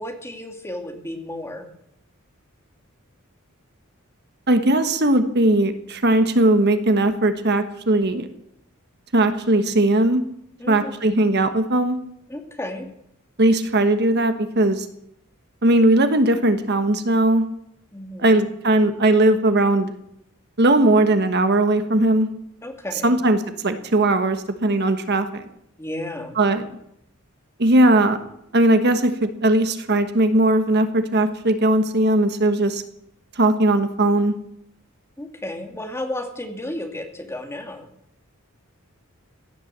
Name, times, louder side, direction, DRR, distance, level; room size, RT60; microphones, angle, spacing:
voice 1, 0.0-1.7 10.6-10.9 12.3-12.9 17.9-18.4 22.6-23.2 25.8-26.4 35.2-37.9, left 1 dB, 10° left, 3 dB, 2.2 m, -33 dB
voice 2, 4.5-8.3 9.1-10.2 10.7-12.0 13.4-14.8 15.6-17.4 18.2-19.9 20.6-22.3 23.0-23.4 23.6-25.4 26.4-26.6 27.6-28.2 28.5-32.8 33.4-34.3, right 1 dB, 50° right, 9 dB, 1.3 m, -18 dB
17.0 x 11.0 x 7.5 m, 0.77 s
head